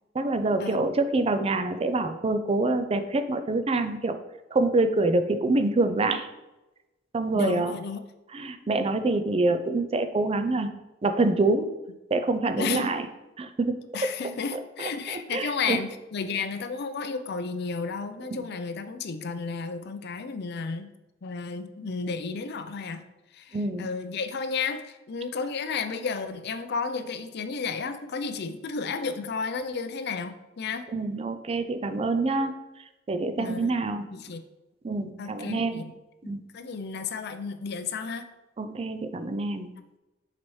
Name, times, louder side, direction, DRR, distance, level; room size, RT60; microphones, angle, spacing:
voice 1, 0.1-4.2 4.5-6.3 7.1-7.7 8.3-10.7 11.0-11.7 12.1-13.0 13.4-14.1 14.5-15.8 18.3-18.5 23.5-23.9 30.9-32.5 33.1-34.1 34.8-35.8 36.3-36.4 38.6-39.7, right 2 dB, 30° right, 9 dB, 0.4 m, -26 dB
voice 2, 7.3-8.0 12.6-12.9 13.9-20.9 21.2-23.1 23.3-30.9 33.4-33.7 34.1-34.4 35.2-35.9 36.2-38.3, left 5 dB, 55° left, 9 dB, 0.5 m, -32 dB
7.6 x 4.1 x 3.2 m, 1.0 s
head